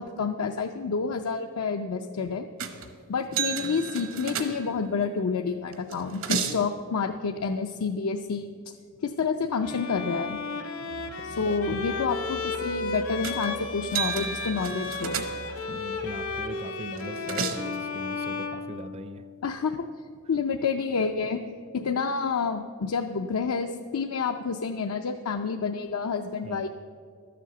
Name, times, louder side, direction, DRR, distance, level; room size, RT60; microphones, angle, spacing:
voice 1, 0.0-2.5 3.1-8.8 9.0-10.4 11.2-15.2 19.4-19.8 20.3-21.4 21.7-26.7, left 5 dB, 80° left, 5 dB, 0.5 m, -29 dB
sound 1, 2.6-2.9 3.3-4.9 5.7-6.7 13.2-13.5 13.8-15.7 17.0-17.8, right 7 dB, 65° right, 0.9 m, -32 dB
Bowed string instrument, 9.6-19.3, left 4 dB, 65° left, 1.0 m, -34 dB
Musical instrument, 10.9-16.6, right 3 dB, 85° right, 0.5 m, -46 dB
voice 2, 11.3-11.8 14.7-15.0 15.7-19.3 21.8-21.9 26.4-26.7, right 2 dB, 25° right, 10 dB, 0.4 m, -41 dB
12.5 x 7.5 x 6.9 m, 2.2 s
head